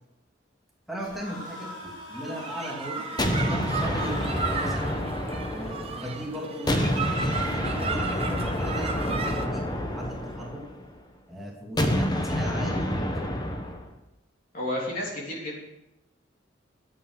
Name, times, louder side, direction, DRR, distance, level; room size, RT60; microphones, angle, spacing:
voice 1, 0.9-4.9 5.5-10.6 11.3-13.1, equal, ahead, -4 dB, 2.7 m, -37 dB
sound 1, 1.0-5.0, right 1 dB, 70° left, 4.9 m, -40 dB
sound 2, 2.2-9.5, right 5 dB, 30° right, 1.0 m, -34 dB
sound 3, 3.2-6.2 6.7-10.9 11.8-13.9, left 1 dB, 20° left, 1.1 m, -28 dB
voice 2, 14.5-15.6, left 1 dB, 45° left, -3 dB, 3.5 m, -31 dB
10.5 x 8.6 x 6.0 m, 0.88 s
head